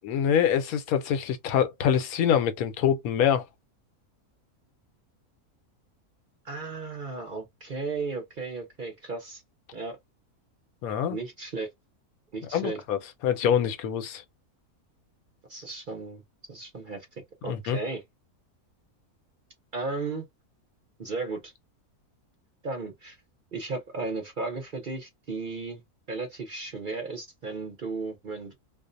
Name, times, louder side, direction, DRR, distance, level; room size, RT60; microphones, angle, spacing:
voice 1, 0.0-3.4 10.8-11.2 12.5-14.2 17.4-17.8, left 8 dB, 75° left, 1.0 m, -25 dB
voice 2, 6.4-9.4 9.7-10.0 11.1-11.7 12.3-12.8 15.5-16.2 16.5-17.1 17.4-18.0 19.7-20.3 21.0-21.5 22.6-23.2 23.5-25.8 26.1-28.6, right 3 dB, 50° right, 0.6 m, -35 dB
2.5 x 2.0 x 2.5 m
omnidirectional pair, 1.6 m